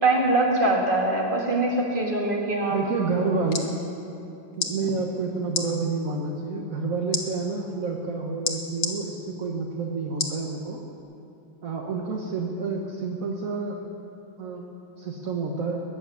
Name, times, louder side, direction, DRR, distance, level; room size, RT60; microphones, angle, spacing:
voice 1, 0.0-2.8, right 2 dB, 25° right, -1 dB, 2.2 m, -23 dB
voice 2, 2.7-3.7 4.6-10.8 11.6-13.8 14.4-14.6 15.0-15.8, right 4 dB, 50° right, 0 dB, 1.5 m, -29 dB
sound 1, 3.3-3.7 4.5-4.7 5.5-5.7 7.1-7.2 8.4-8.9 10.2-10.4 11.0-11.1, left 5 dB, 50° left, 1.6 m, -28 dB
21.0 x 7.2 x 9.3 m, 2.7 s
omnidirectional pair, 2.1 m